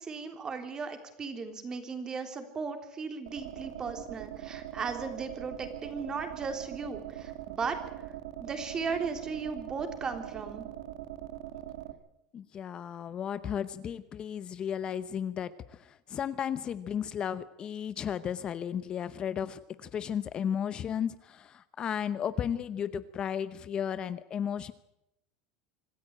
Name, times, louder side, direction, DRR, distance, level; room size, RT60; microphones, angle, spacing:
voice 1, 0.0-7.8 8.4-10.7, right 5 dB, 25° right, 7 dB, 3.6 m, -36 dB
sound 1, 3.3-11.9, right 13 dB, 85° right, 2.1 m, -42 dB
voice 2, 12.3-24.7, left 8 dB, 30° left, 14 dB, 0.8 m, -34 dB
25.5 x 13.5 x 9.0 m, 0.85 s
supercardioid pair, 135°, 3 cm